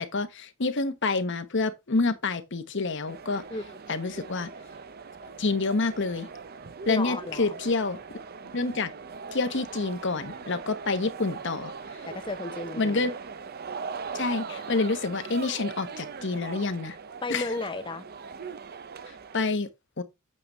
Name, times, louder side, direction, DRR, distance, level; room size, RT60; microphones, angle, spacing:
voice 1, 0.0-3.4 3.9-4.5 5.4-6.3 6.9-8.2 8.5-8.9 9.3-11.7 12.7-13.1 14.1-17.0 17.3-17.5 19.1-19.7 20.0-20.1, left 3 dB, 60° left, 1.1 m, -28 dB
sound 1, 3.1-19.5, right 5 dB, 50° right, 0.7 m, -40 dB
voice 2, 6.9-7.5 12.0-13.1 17.2-18.0, left 2 dB, 25° left, 0.7 m, -33 dB
8.6 x 6.9 x 3.1 m
head